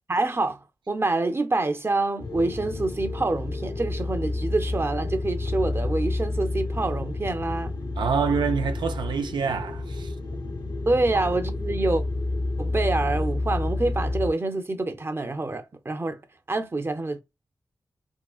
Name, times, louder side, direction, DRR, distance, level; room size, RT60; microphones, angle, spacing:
voice 1, 0.1-7.7 10.9-12.0 12.6-16.2 16.5-17.2, right 2 dB, 30° right, 0.6 m, -26 dB
sound 1, 2.2-14.3, left 2 dB, 65° left, 0.9 m, -29 dB
voice 2, 8.0-10.2 11.1-11.2, right 6 dB, 80° right, 0.3 m, -26 dB
3.6 x 2.1 x 2.3 m
cardioid pair, 55°, 8 cm